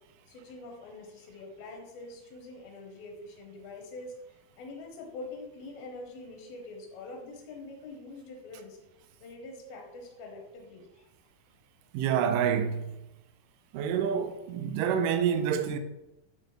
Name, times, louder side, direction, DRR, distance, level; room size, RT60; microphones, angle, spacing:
voice 1, 0.3-8.8 9.2-11.1, left 2 dB, 80° left, 2.8 m, -45 dB
voice 2, 11.9-12.9 13.7-15.8, right 8 dB, 80° right, 2.0 m, -27 dB
7.9 x 4.3 x 3.1 m
omnidirectional pair, 4.3 m